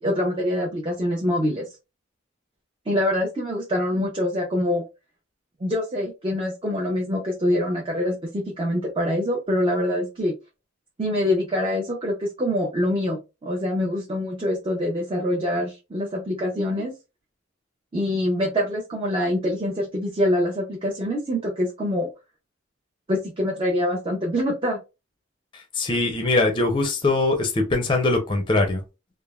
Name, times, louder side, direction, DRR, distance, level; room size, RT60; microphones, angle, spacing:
voice 1, 0.0-1.7 2.9-4.8 5.6-10.3 11.0-16.9 17.9-22.1 23.1-24.8, left 1 dB, 25° right, 0.5 m, -25 dB
voice 2, 25.8-28.8, left 2 dB, 25° left, 0.5 m, -22 dB
3.2 x 2.0 x 2.2 m
head